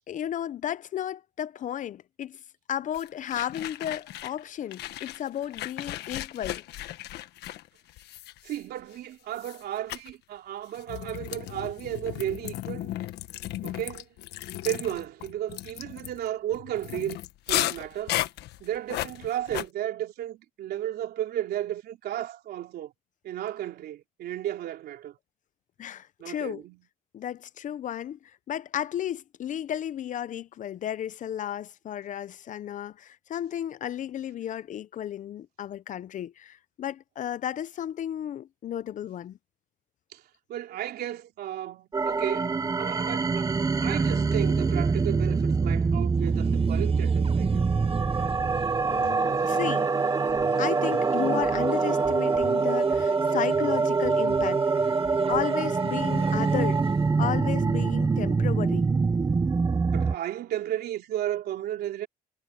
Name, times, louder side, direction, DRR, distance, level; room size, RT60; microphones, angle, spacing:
voice 1, 0.1-2.4 2.7-6.6 25.8-26.6 27.1-39.4 48.8-49.9 50.6-55.0 55.3-56.8 57.2-58.9, left 10 dB, 50° left, 0.7 m, -33 dB
sound 1, 2.9-4.4 4.7-8.9 9.4-9.6 9.9-10.1 10.7-19.7, left 14 dB, 80° left, 1.5 m, -35 dB
voice 2, 8.4-12.9 13.6-14.1 14.6-17.2 17.5-18.2 18.6-22.9 23.2-25.2 26.2-26.8 40.1-40.2 40.5-43.5 43.8-47.6 59.9-62.1, right 12 dB, 70° right, 3.7 m, -34 dB
sound 2, 41.9-60.2, right 4 dB, 20° right, 0.8 m, -25 dB
sound 3, 46.1-57.1, right 6 dB, 35° right, 5.6 m, -38 dB
cardioid pair, 110°, 17 cm